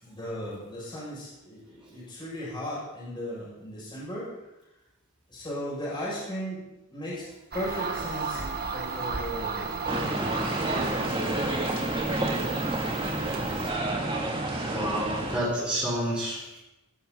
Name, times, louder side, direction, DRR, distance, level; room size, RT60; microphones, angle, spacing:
voice 1, 0.0-4.4 5.3-11.6, equal, 20° left, -6 dB, 6.6 m, -37 dB
sound 1, 7.5-13.7, right 4 dB, 45° right, 1.8 m, -34 dB
sound 2, 9.9-15.4, right 2 dB, 25° right, 2.7 m, -29 dB
voice 2, 14.6-16.6, right 1 dB, 5° right, -9 dB, 4.5 m, -29 dB
20.0 x 14.0 x 4.1 m, 0.93 s
head